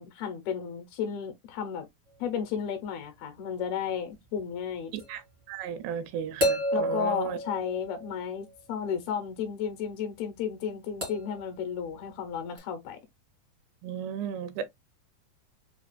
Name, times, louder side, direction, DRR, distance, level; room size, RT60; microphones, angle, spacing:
voice 1, 0.0-1.9 2.2-4.9 6.7-13.0, left 8 dB, 75° left, 2.5 m, -33 dB
sound 1, 5.0-5.1 6.4-8.4 11.0-11.5 12.6-12.7, equal, 60° right, 0.6 m, -30 dB
voice 2, 5.5-7.4 13.8-14.7, right 8 dB, 90° right, 2.8 m, -35 dB
6.5 x 2.3 x 2.3 m
omnidirectional pair, 4.8 m